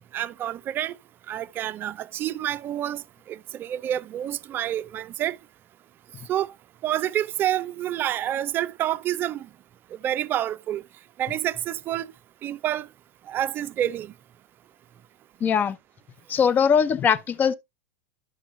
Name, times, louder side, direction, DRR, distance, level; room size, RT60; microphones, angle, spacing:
voice 1, 0.1-1.0 1.3-5.4 6.3-6.5 6.8-9.5 9.9-10.8 11.2-12.1 12.4-12.9 13.3-14.1, right 12 dB, 30° right, 0.5 m, -28 dB
voice 2, 15.4-15.8 16.3-17.5, left 7 dB, 25° left, 0.7 m, -21 dB
11.5 x 6.2 x 2.6 m
hypercardioid pair, 125°, 7 cm